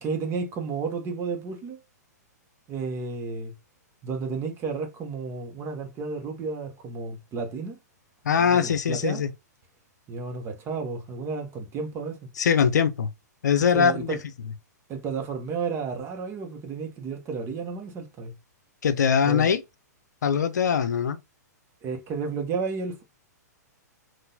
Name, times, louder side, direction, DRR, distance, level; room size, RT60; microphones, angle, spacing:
voice 1, 0.0-1.8 2.7-3.5 4.0-7.8 8.3-9.2 10.1-12.3 13.7-14.2 14.9-18.3 19.2-19.5 21.8-23.0, right 5 dB, 25° right, 1.1 m, -32 dB
voice 2, 8.2-9.3 12.4-13.1 13.4-14.2 18.8-19.6 20.2-21.2, left 7 dB, 75° left, 0.6 m, -22 dB
3.8 x 2.6 x 4.1 m
hypercardioid pair, 120°, 10 cm